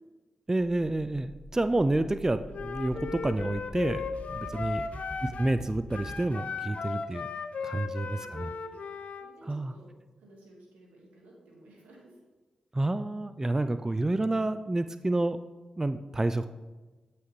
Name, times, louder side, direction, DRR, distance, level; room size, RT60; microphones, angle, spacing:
voice 1, 0.5-4.0 4.3-4.8 5.4-7.3 7.6-8.1 8.3-8.5 9.5-9.7 12.7-15.4 15.8-16.5, right 2 dB, 20° right, 11 dB, 0.3 m, -29 dB
sound 1, 1.3-6.2, equal, 25° left, 1.1 m, -45 dB
Wind instrument woodwind instrument, 2.5-5.6 5.9-9.3, left 5 dB, 65° left, 0.5 m, -36 dB
voice 2, 4.4-4.8 7.9-8.8 9.2-9.9 10.2-12.2, right 1 dB, 90° right, -2 dB, 1.6 m, -55 dB
7.9 x 5.8 x 3.1 m, 1.2 s
supercardioid pair, 40°, 3 cm